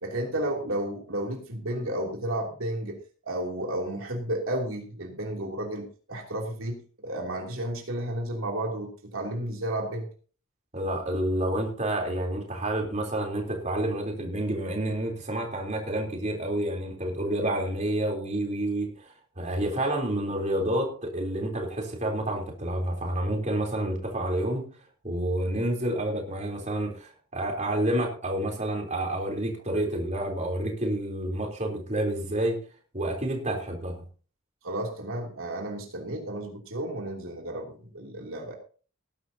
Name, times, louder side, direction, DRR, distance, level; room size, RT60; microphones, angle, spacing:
voice 1, 0.0-3.0 3.2-10.1 34.6-38.5, right 1 dB, 70° right, 0 dB, 3.0 m, -32 dB
voice 2, 10.7-24.6 25.0-32.6 32.9-34.0, right 1 dB, 35° right, 1 dB, 3.6 m, -29 dB
19.0 x 11.5 x 2.8 m, 0.39 s
head